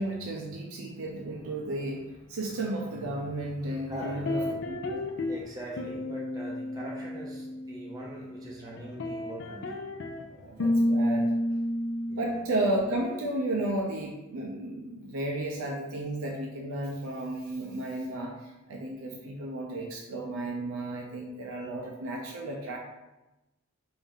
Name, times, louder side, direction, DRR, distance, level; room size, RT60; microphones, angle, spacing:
voice 1, 0.0-4.4 4.7-5.0 10.3-11.3 12.2-22.8, right 1 dB, 80° right, 0 dB, 0.5 m, -33 dB
voice 2, 3.6-4.5 5.2-9.8 12.1-12.4, right 1 dB, 15° right, -4 dB, 0.5 m, -42 dB
sound 1, 4.0-5.4 5.8-8.5 8.8-13.1, left 1 dB, 60° left, 0.4 m, -31 dB
3.4 x 2.6 x 3.5 m, 1.0 s
head